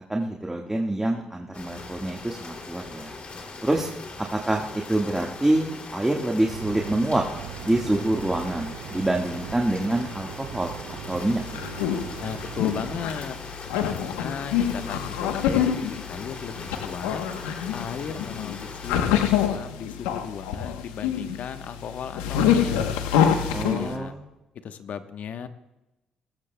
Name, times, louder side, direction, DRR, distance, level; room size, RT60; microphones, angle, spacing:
voice 1, 0.1-3.1 3.6-3.9 4.3-7.2 7.6-11.5 23.5-24.2, right 1 dB, 15° right, 0 dB, 1.6 m, -26 dB
sound 1, 1.5-19.0, left 3 dB, 45° left, 2.7 m, -40 dB
sound 2, 6.5-13.1, right 13 dB, 80° right, 0.5 m, -39 dB
sound 3, 11.2-23.9, left 9 dB, 90° left, 0.9 m, -26 dB
voice 2, 12.2-13.4 13.8-17.2 17.7-22.8 23.8-24.2 24.6-25.5, left 7 dB, 65° left, 9 dB, 1.0 m, -36 dB
20.0 x 14.0 x 2.2 m, 0.99 s
supercardioid pair, 55°, 3 cm